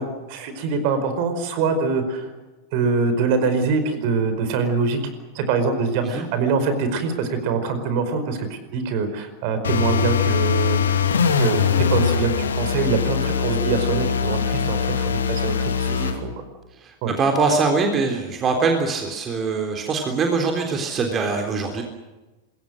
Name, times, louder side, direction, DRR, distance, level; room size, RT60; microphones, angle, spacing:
voice 1, 0.0-2.3 2.7-5.0 5.3-11.1 11.4-16.4 17.0-17.1, right 4 dB, 45° right, 9 dB, 4.9 m, -24 dB
sound 1, 9.6-16.2, left 7 dB, 65° left, 2.8 m, -22 dB
voice 2, 16.8-21.8, right 4 dB, 25° right, 3 dB, 3.6 m, -23 dB
27.0 x 22.0 x 6.5 m, 1.1 s
figure-of-eight pair, 90°, 0 cm